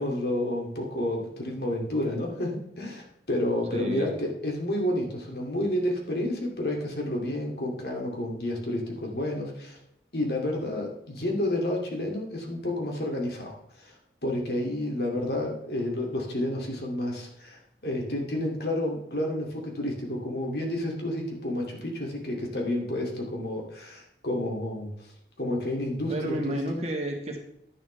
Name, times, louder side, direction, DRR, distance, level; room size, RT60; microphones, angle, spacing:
voice 1, 0.0-9.8 10.1-13.9 14.2-24.9 25.4-26.8, left 1 dB, 60° left, 0 dB, 2.5 m, -30 dB
voice 2, 3.7-4.1 26.1-27.4, right 1 dB, 35° right, 1 dB, 1.7 m, -31 dB
11.0 x 10.5 x 3.4 m, 0.77 s
head